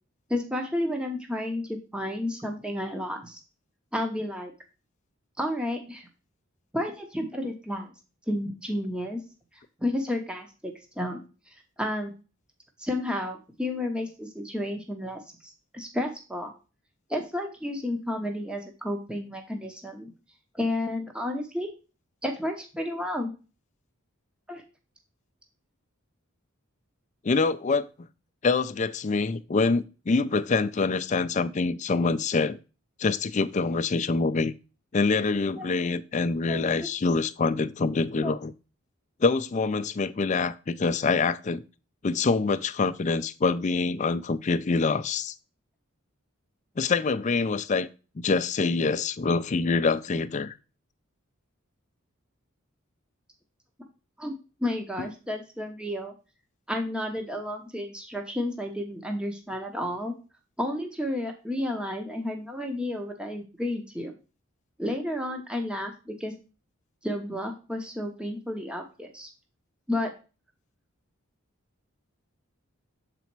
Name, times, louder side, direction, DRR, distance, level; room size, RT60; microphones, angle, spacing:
voice 1, 0.3-3.4 3.9-4.5 5.4-6.0 6.7-7.9 8.3-9.2 9.8-11.2 11.5-12.1 12.8-16.5 17.1-20.1 20.5-21.7 22.2-23.3 24.5-24.6 35.6-35.7 36.5-36.7 38.2-38.4 54.2-56.1 56.7-60.1 60.6-64.1 64.8-66.3 67.0-69.3 69.9-70.1, left 1 dB, 5° right, 0.8 m, -31 dB
voice 2, 27.2-28.1 28.4-32.6 33.0-34.5 34.9-38.5 39.2-41.6 42.0-45.3 46.8-47.9 48.2-50.6, left 4 dB, 35° left, 0.4 m, -25 dB
6.9 x 4.1 x 4.5 m
head